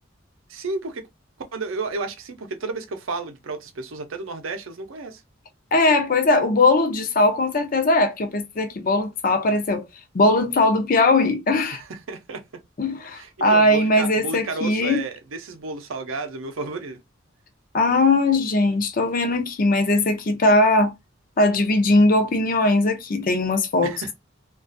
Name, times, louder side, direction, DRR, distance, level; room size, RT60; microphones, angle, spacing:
voice 1, 0.5-1.1 1.5-5.2 11.8-12.4 13.1-17.0 23.8-24.1, right 3 dB, 80° right, 0.6 m, -32 dB
voice 2, 5.7-9.8 10.1-11.8 12.8-15.0 17.7-20.9 21.4-24.1, left 2 dB, 45° left, 0.5 m, -20 dB
2.4 x 2.3 x 2.5 m
head